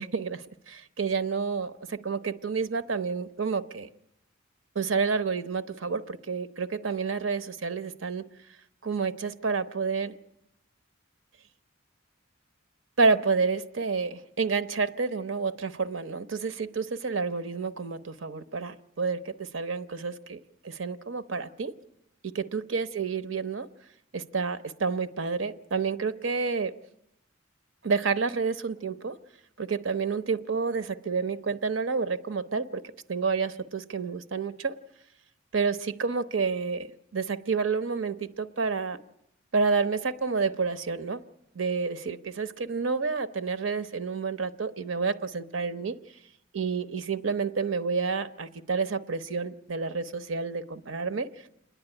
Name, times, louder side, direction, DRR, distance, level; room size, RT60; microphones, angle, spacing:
voice 1, 0.0-3.9 4.7-8.3 8.8-10.1 13.0-20.4 20.6-21.7 22.2-23.7 24.1-26.7 27.8-29.1 29.6-32.8 33.1-34.8 35.5-36.9 37.1-39.0 39.5-41.2 41.5-46.0 46.5-51.3, right 4 dB, 80° right, 12 dB, 0.8 m, -29 dB
28.0 x 10.0 x 9.8 m, 0.83 s
head